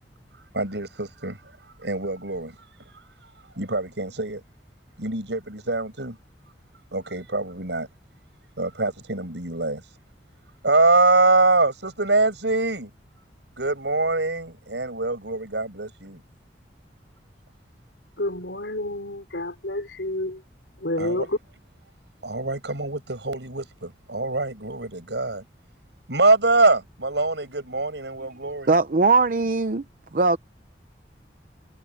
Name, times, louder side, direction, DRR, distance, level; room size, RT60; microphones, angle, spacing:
voice 1, 0.5-1.4 1.8-2.5 3.6-4.4 5.0-6.2 6.9-7.9 8.6-9.8 10.6-12.9 13.6-16.2 21.0-21.3 22.2-25.4 26.1-28.7, right 3 dB, 80° right, 6.8 m, -24 dB
voice 2, 18.2-20.4 20.8-21.4, left 1 dB, 85° left, 4.8 m, -29 dB
voice 3, 28.7-29.8 30.1-30.4, right 3 dB, 50° right, 0.7 m, -20 dB
head